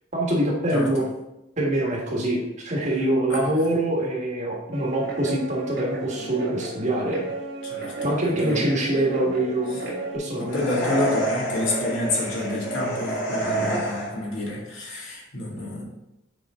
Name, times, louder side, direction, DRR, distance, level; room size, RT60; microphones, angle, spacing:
voice 1, 0.1-1.1 1.6-7.2 8.0-9.8 10.1-10.6 13.4-13.8, right 1 dB, 35° right, -2 dB, 1.5 m, -24 dB
Guitar, 4.7-10.2, right 2 dB, 55° right, 1.5 m, -33 dB
voice 2, 7.6-8.6 10.3-15.8, left 2 dB, 65° left, -4 dB, 2.2 m, -28 dB
sound 1, 10.5-14.4, right 2 dB, 45° left, 2.7 m, -28 dB
7.4 x 4.9 x 3.6 m, 0.90 s
head